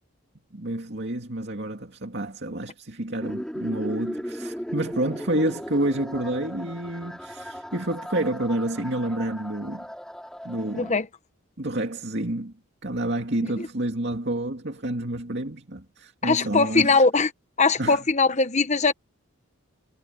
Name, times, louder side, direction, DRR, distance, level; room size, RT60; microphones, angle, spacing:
voice 1, 0.5-9.9 10.4-10.9 11.6-12.5 12.8-17.0 17.8-18.0, right 1 dB, 50° right, 2.6 m, -29 dB
sound 1, 3.2-10.9, equal, 5° left, 5.4 m, -37 dB
voice 2, 10.7-11.1 13.6-13.7 16.2-17.3 17.6-18.9, left 4 dB, 30° left, 1.0 m, -21 dB
head